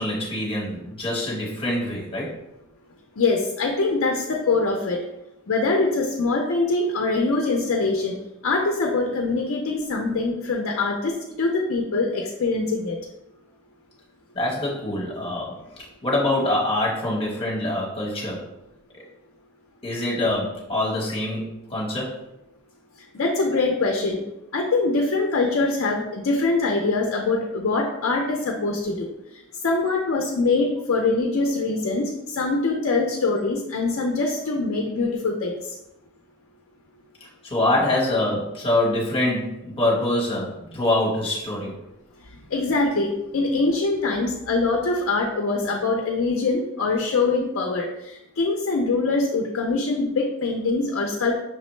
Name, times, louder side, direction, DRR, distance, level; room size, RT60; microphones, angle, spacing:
voice 1, 0.0-2.3 14.3-18.4 18.9-19.0 19.8-22.1 37.4-41.7, left 1 dB, 25° left, -3 dB, 1.1 m, -25 dB
voice 2, 3.2-5.0 5.5-8.1 8.4-13.0 23.1-24.2 24.5-29.1 29.6-35.5 42.5-51.4, left 3 dB, 65° left, 1 dB, 0.5 m, -23 dB
5.8 x 2.1 x 3.1 m, 0.89 s
head